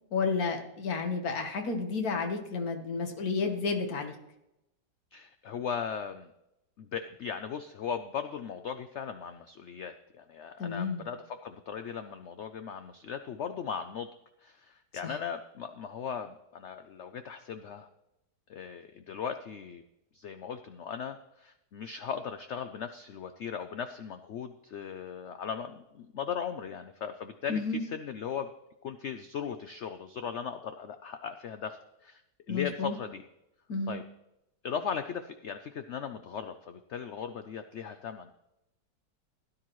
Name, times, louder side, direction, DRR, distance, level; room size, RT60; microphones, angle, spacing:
voice 1, 0.1-4.2 10.6-11.0 15.0-15.1 27.5-27.8 32.5-33.0 33.7-34.0, left 4 dB, 60° left, 5 dB, 1.7 m, -31 dB
voice 2, 5.1-6.3 6.8-14.1 14.4-17.9 18.5-19.8 20.1-28.5 28.8-32.2 32.5-33.2 33.9-34.0 34.6-38.3, left 7 dB, 80° left, 9 dB, 0.6 m, -38 dB
16.5 x 10.0 x 3.1 m, 0.88 s
omnidirectional pair, 1.8 m